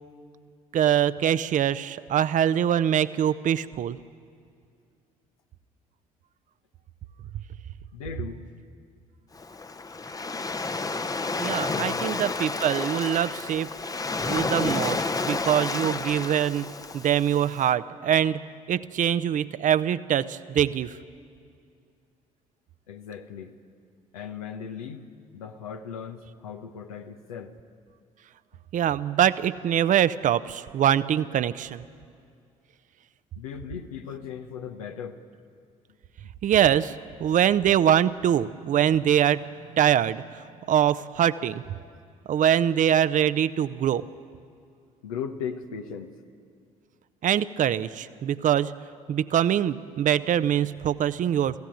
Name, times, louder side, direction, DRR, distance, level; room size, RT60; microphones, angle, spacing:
voice 1, 0.7-4.0 11.4-13.7 14.3-16.7 16.9-20.9 28.7-31.8 36.4-36.9 37.2-39.4 39.7-40.4 40.7-41.6 42.3-44.0 47.2-48.7 49.1-51.5, right 10 dB, 45° right, 14 dB, 0.7 m, -23 dB
voice 2, 7.9-8.4 11.7-12.1 22.9-23.5 24.1-25.1 25.3-27.5 33.4-35.2 37.2-37.4 45.0-46.1, left 7 dB, 80° left, 6 dB, 1.2 m, -37 dB
Waves surf, 9.3-17.6, left 3 dB, 20° left, 0.9 m, -30 dB
25.0 x 15.5 x 9.2 m, 2.3 s
figure-of-eight pair, 50°, 18 cm